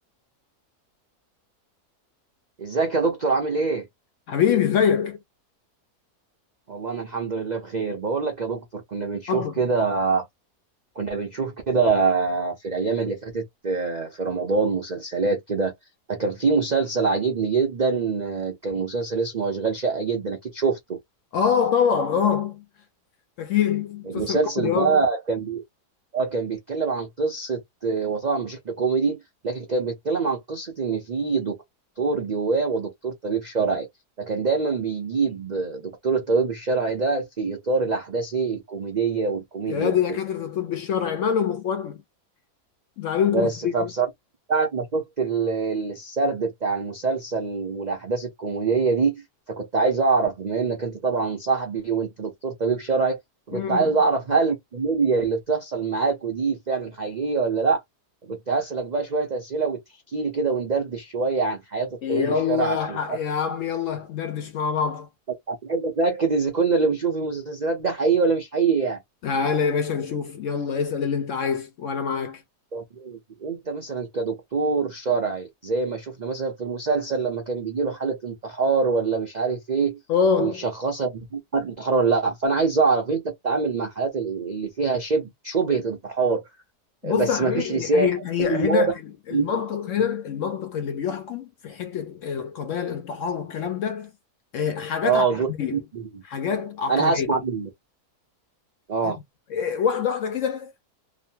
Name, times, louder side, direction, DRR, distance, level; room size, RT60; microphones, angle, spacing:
voice 1, 2.6-3.9 6.7-10.3 11.0-15.7 16.1-21.0 24.1-25.6 26.1-31.6 32.0-33.9 34.2-40.0 43.3-44.1 44.5-49.2 49.6-53.2 53.5-57.8 58.3-59.8 60.1-63.2 65.5-69.0 72.7-80.0 80.4-86.4 87.0-88.1 88.4-88.9 89.3-89.5 95.0-96.2 96.9-97.7 98.9-99.2, right 4 dB, 85° right, 0.3 m, -25 dB
voice 2, 4.3-5.2 9.3-9.7 21.3-22.6 23.4-25.0 39.7-42.0 43.0-43.9 53.5-54.0 62.0-65.1 69.2-72.4 80.1-80.6 87.0-88.9 89.3-94.1 94.5-95.8 96.3-97.4 99.0-99.2 99.5-100.9, left 7 dB, 70° left, 0.7 m, -25 dB
3.0 x 2.0 x 2.7 m
omnidirectional pair, 1.7 m